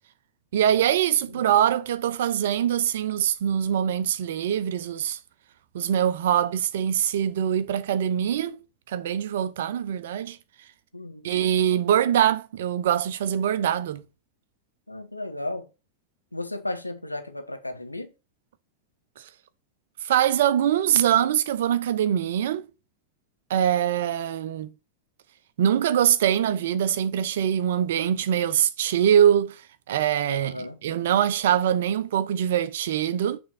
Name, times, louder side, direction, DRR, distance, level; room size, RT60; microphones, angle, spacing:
voice 1, 0.5-5.2 5.7-8.6 8.9-10.4 11.2-14.0 20.0-22.7 23.5-24.7 25.6-29.6 29.9-33.4, right 10 dB, 60° right, 0.6 m, -23 dB
voice 2, 14.9-15.7 16.3-18.1 30.3-30.8, left 2 dB, 85° left, 0.9 m, -34 dB
6.3 x 3.5 x 5.7 m
figure-of-eight pair, 90°, 0 cm